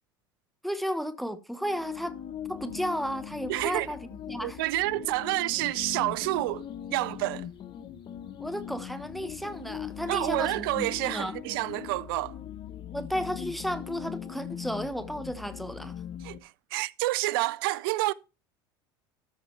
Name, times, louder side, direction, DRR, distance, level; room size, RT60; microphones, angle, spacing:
voice 1, 0.6-2.2 2.5-4.6 8.4-11.4 12.9-15.9, equal, ahead, 1.0 m, -33 dB
sound 1, 1.6-16.4, left 9 dB, 40° left, 0.9 m, -40 dB
voice 2, 3.5-3.9 4.4-6.6 6.9-7.5 10.1-12.4 16.2-18.1, right 19 dB, 75° right, 0.5 m, -29 dB
13.0 x 5.0 x 4.5 m
hypercardioid pair, 90°, 12 cm